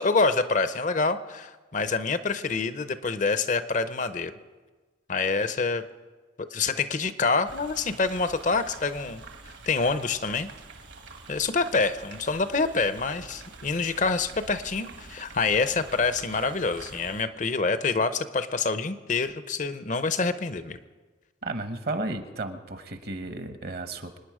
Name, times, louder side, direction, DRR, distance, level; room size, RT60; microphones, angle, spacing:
voice 1, 0.0-4.3 5.1-5.8 6.4-9.2 9.7-10.5 11.3-20.8, left 4 dB, 40° left, 12 dB, 0.6 m, -26 dB
sound 1, 7.5-17.2, right 3 dB, 70° right, 1.5 m, -46 dB
voice 2, 21.4-24.2, right 2 dB, 55° right, 9 dB, 1.0 m, -33 dB
25.5 x 9.7 x 4.9 m, 1.3 s
head